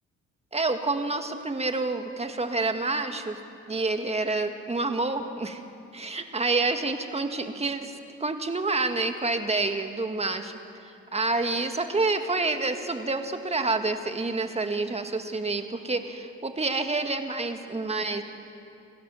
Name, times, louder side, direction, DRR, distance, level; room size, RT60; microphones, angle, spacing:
voice 1, 0.5-3.4 3.7-5.6 5.9-10.5 10.8-18.2, right 3 dB, 20° right, 7 dB, 1.8 m, -28 dB
27.0 x 16.5 x 7.1 m, 2.6 s
cardioid pair, 90°, 30 cm